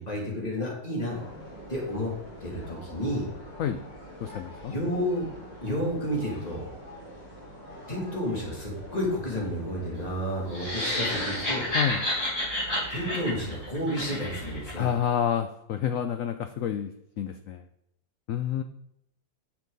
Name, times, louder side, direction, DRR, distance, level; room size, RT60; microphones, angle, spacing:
voice 1, 0.1-1.2 1.7-2.1 2.4-3.3 4.7-5.3 5.6-6.6 7.9-11.7 12.9-14.9, equal, 20° left, -3 dB, 2.8 m, -31 dB
sound 1, 1.1-14.7, right 1 dB, 60° left, 4.9 m, -45 dB
voice 2, 4.2-4.7 11.7-12.0 14.7-16.9 17.2-17.6 18.3-18.6, left 9 dB, 80° left, 8 dB, 0.7 m, -28 dB
sound 2, 10.5-14.7, left 1 dB, 45° left, 4.6 m, -30 dB
10.5 x 6.9 x 4.0 m, 0.83 s
omnidirectional pair, 2.0 m